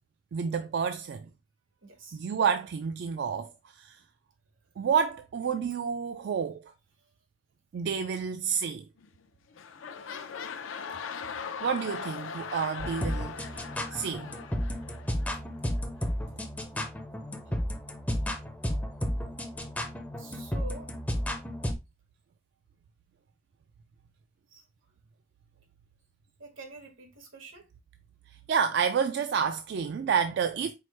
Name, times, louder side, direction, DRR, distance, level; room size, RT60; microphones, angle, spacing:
voice 1, 0.3-1.3 2.1-4.0 4.8-6.7 7.7-8.8 11.6-13.6 13.9-14.3 28.5-30.7, right 6 dB, 60° right, 0.3 m, -29 dB
voice 2, 1.8-2.2 20.2-20.9 24.5-24.6 26.4-27.7, right 3 dB, 85° right, 1.4 m, -46 dB
sound 1, 9.0-9.3 9.5-15.4 16.0-16.1, left 6 dB, 80° left, 0.5 m, -40 dB
sound 2, 12.8-21.7, equal, 10° left, 0.5 m, -33 dB
4.6 x 2.1 x 4.3 m
head